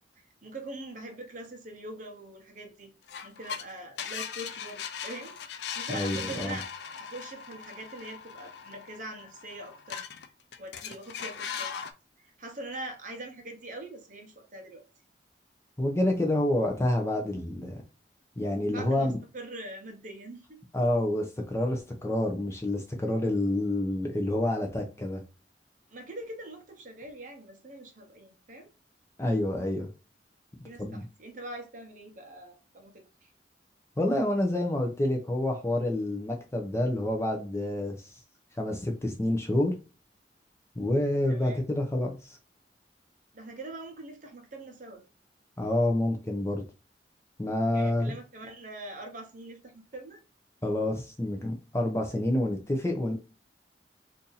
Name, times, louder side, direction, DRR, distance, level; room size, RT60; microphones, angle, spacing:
voice 1, 0.2-2.9 3.2-5.4 5.7-6.7 7.0-10.0 10.6-11.7 12.4-14.8 18.7-20.6 25.9-28.7 30.6-33.3 41.3-41.6 43.3-45.0 47.7-50.2, right 1 dB, 45° right, 0.8 m, -43 dB
sound 1, 3.1-3.6 4.0-10.3 10.5-11.9, left 7 dB, 70° left, 0.4 m, -39 dB
voice 2, 5.9-6.6 15.8-17.8 18.4-19.1 20.7-25.2 29.2-29.9 30.8-31.0 34.0-38.0 38.6-39.7 40.8-42.2 45.6-46.6 47.4-48.1 50.6-53.1, left 1 dB, 15° left, 0.5 m, -28 dB
2.7 x 2.6 x 3.8 m
head